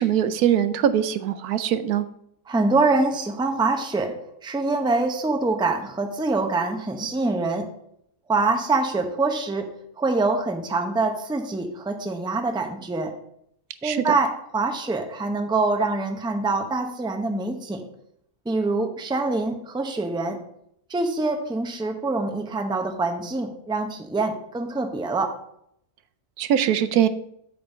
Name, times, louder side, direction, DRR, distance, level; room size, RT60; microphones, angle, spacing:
voice 1, 0.0-2.0 13.8-14.0 26.4-27.1, right 10 dB, 80° right, 11 dB, 1.1 m, -22 dB
voice 2, 2.5-4.1 4.4-7.7 8.3-9.7 10.0-13.1 13.8-17.9 18.4-20.4 20.9-25.4, right 3 dB, 5° right, 4 dB, 0.6 m, -25 dB
8.5 x 4.1 x 7.1 m, 0.73 s
omnidirectional pair, 1.6 m